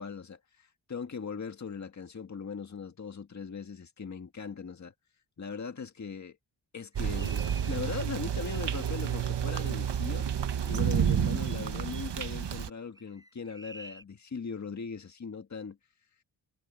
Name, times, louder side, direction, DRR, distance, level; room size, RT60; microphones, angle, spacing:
voice 1, 0.0-4.9 5.4-6.4 6.7-10.3 10.6-15.8, left 5 dB, 35° left, 1.9 m, -39 dB
sound 1, 6.9-9.7 13.0-14.0, right 1 dB, 10° right, 6.5 m, -51 dB
sound 2, 7.0-12.7, right 9 dB, 65° right, 1.4 m, -30 dB
wide cardioid pair, 180°, 46 cm